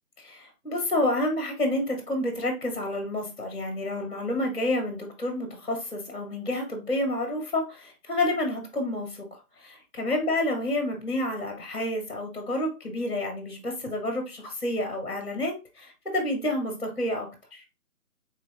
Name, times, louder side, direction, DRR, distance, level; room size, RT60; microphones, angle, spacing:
voice 1, 0.2-9.3 9.6-17.6, left 1 dB, 35° left, 1 dB, 1.0 m, -29 dB
3.7 x 2.6 x 3.2 m, 0.28 s
figure-of-eight pair, 175°, 46 cm